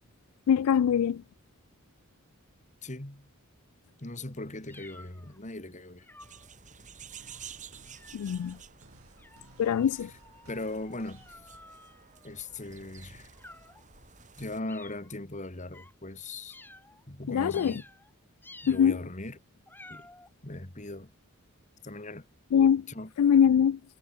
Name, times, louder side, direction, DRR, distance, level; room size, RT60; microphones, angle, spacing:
voice 1, 0.5-1.2 8.1-8.6 9.6-10.1 17.3-17.8 18.7-19.0 22.5-22.9 23.2-23.8, left 8 dB, 80° left, 0.3 m, -23 dB
voice 2, 2.8-3.3 4.0-6.1 10.5-11.4 12.2-13.3 14.4-16.6 17.1-17.9 18.6-19.4 19.9-20.1 20.4-21.1 21.8-22.3 22.9-23.1, left 2 dB, 35° left, 2.1 m, -39 dB
sound 1, 4.7-5.4 6.0-6.5 7.1-7.4 7.8-8.6 9.2-12.6 13.3-13.9 14.7-15.1 15.7-15.9 16.5-17.0 17.5-18.1 18.4-19.0 19.7-20.3, left 2 dB, 10° left, 2.1 m, -53 dB
sound 2, 6.2-14.6, right 7 dB, 35° right, 7.4 m, -51 dB
sound 3, 7.2-11.6, right 2 dB, 75° right, 3.7 m, -58 dB
head